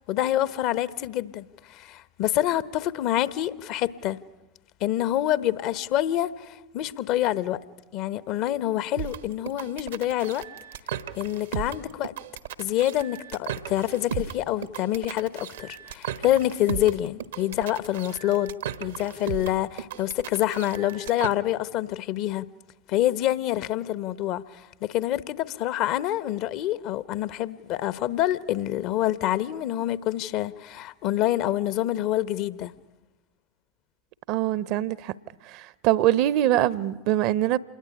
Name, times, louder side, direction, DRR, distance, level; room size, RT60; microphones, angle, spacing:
voice 1, 0.0-4.2 4.8-7.6 7.9-10.4 11.2-12.1 12.6-18.5 18.8-22.5 22.9-32.7, left 13 dB, 50° left, 1.1 m, -27 dB
sound 1, 9.0-21.3, right 10 dB, 70° right, 1.3 m, -36 dB
voice 2, 34.3-35.1 35.5-37.6, right 13 dB, 55° right, 1.0 m, -23 dB
27.5 x 21.0 x 9.9 m
figure-of-eight pair, 80°, 0 cm